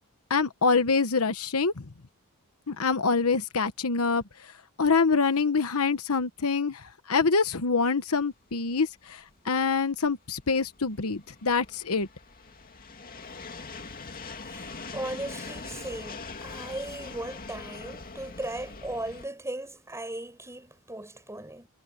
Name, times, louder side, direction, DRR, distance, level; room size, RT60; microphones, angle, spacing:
voice 1, 0.3-1.7 2.7-4.2 4.8-12.1, left 4 dB, 70° left, 1.1 m, -25 dB
sound 1, 8.3-19.3, left 4 dB, 40° left, 2.2 m, -42 dB
voice 2, 14.4-21.7, right 1 dB, 15° right, 8.0 m, -37 dB
head